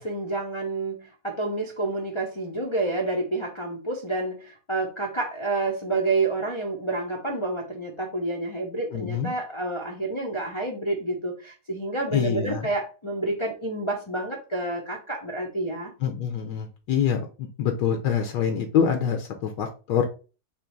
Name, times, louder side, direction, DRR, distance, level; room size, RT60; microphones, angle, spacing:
voice 1, 0.0-15.9, right 2 dB, 45° left, -1 dB, 0.4 m, -29 dB
voice 2, 8.9-9.3 12.1-12.6 16.0-20.0, left 8 dB, 75° left, 4 dB, 1.3 m, -25 dB
3.8 x 3.0 x 4.5 m, 0.34 s
omnidirectional pair, 2.0 m